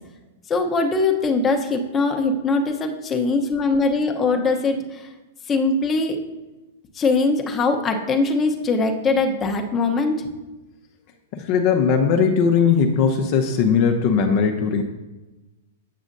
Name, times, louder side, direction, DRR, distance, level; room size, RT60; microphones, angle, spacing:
voice 1, 0.5-5.1 5.5-6.2 6.9-10.2, left 3 dB, 20° left, 4 dB, 0.9 m, -21 dB
voice 2, 11.3-14.8, left 6 dB, 50° left, 4 dB, 0.7 m, -19 dB
8.3 x 6.1 x 2.6 m, 1.1 s
hypercardioid pair, 125°, 0 cm